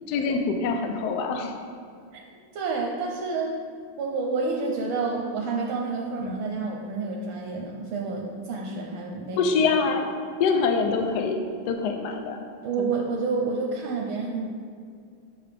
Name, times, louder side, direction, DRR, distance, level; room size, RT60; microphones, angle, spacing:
voice 1, 0.1-1.6 6.2-6.4 9.4-10.1 10.4-11.4 11.7-12.4 12.8-12.9, left 4 dB, 90° left, 4 dB, 0.8 m, -25 dB
voice 2, 2.5-3.6 4.0-9.4 12.6-14.5, right 4 dB, 75° right, -1 dB, 1.4 m, -29 dB
6.6 x 6.0 x 3.4 m, 2.2 s
omnidirectional pair, 2.4 m